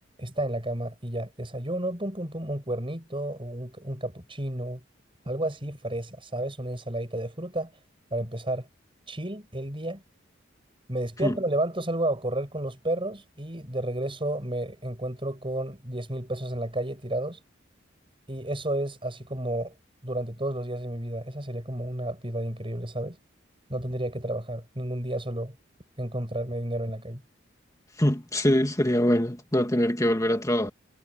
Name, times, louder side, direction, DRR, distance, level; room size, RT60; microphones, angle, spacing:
voice 1, 0.2-4.8 5.2-7.7 8.1-8.7 9.1-10.0 10.9-17.4 18.3-19.7 20.0-23.2 23.7-25.5 26.0-27.2, right 1 dB, 25° right, 6.9 m, -31 dB
voice 2, 28.0-30.7, equal, 15° left, 2.0 m, -23 dB
head